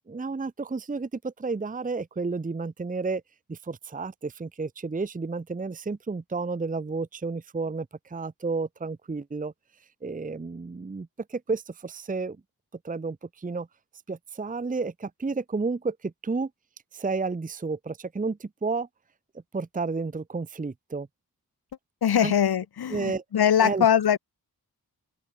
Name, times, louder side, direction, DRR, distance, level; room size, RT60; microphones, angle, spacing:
voice 1, 0.1-3.2 3.5-9.5 10.0-12.4 12.8-13.7 14.1-16.5 16.9-18.9 19.5-21.1 22.2-22.3 22.9-23.2 23.6-23.9, right 4 dB, 20° right, 0.7 m, -31 dB
voice 2, 22.0-24.2, left 9 dB, 75° left, 0.9 m, -22 dB
open air
wide cardioid pair, 115°, 38 cm